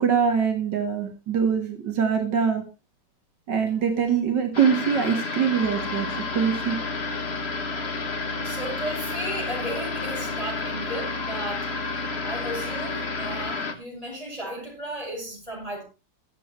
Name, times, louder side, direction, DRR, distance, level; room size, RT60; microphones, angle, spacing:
voice 1, 0.0-2.6 3.5-6.8, right 7 dB, 80° right, 4 dB, 2.3 m, -23 dB
sound 1, 4.5-13.7, left 4 dB, 40° left, 1.6 m, -31 dB
sound 2, 5.5-13.5, equal, 50° right, 2.4 m, -40 dB
voice 2, 8.4-11.7 12.2-15.8, equal, 20° right, -2 dB, 5.9 m, -34 dB
21.5 x 7.5 x 3.2 m, 0.30 s
omnidirectional pair, 1.9 m